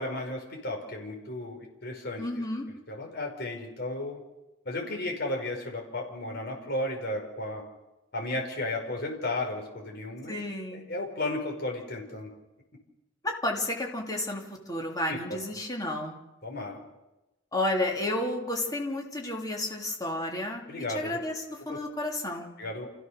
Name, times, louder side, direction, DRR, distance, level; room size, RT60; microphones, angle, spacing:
voice 1, 0.0-2.2 2.9-4.2 4.6-7.6 8.1-10.4 10.7-12.3 15.0-15.4 16.4-16.8 20.7-21.2 21.7-21.8 22.6-22.9, left 2 dB, 55° left, 0 dB, 5.1 m, -34 dB
voice 2, 2.2-2.7 10.3-10.8 13.2-16.2 17.5-20.6 20.9-22.5, left 1 dB, 20° left, 0 dB, 3.1 m, -31 dB
28.0 x 15.5 x 6.6 m, 0.98 s
head